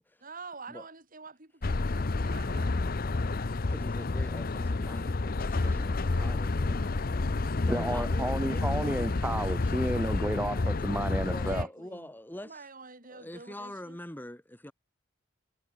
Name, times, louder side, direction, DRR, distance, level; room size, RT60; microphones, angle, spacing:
voice 1, 0.2-2.8 5.5-7.2 11.3-12.1 12.4-14.0, right 4 dB, 40° right, 6.6 m, -48 dB
sound 1, 1.6-11.6, left 3 dB, 45° left, 0.7 m, -30 dB
voice 2, 3.7-6.9 7.6-8.7 11.2-12.7 13.1-14.7, left 1 dB, 10° left, 1.6 m, -44 dB
voice 3, 7.7-11.7, right 1 dB, 10° right, 0.8 m, -32 dB
head